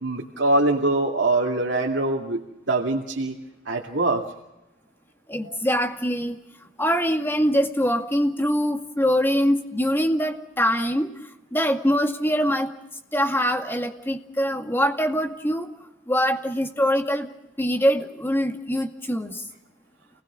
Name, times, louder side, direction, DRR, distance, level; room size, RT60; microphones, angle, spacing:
voice 1, 0.0-3.3 3.7-4.2, right 2 dB, 65° right, -1 dB, 2.6 m, -23 dB
voice 2, 5.3-6.4 6.8-11.1 11.5-12.7 13.1-15.7 16.1-17.3 17.6-19.4, equal, 10° left, 4 dB, 2.0 m, -23 dB
29.0 x 20.0 x 6.3 m, 0.93 s
head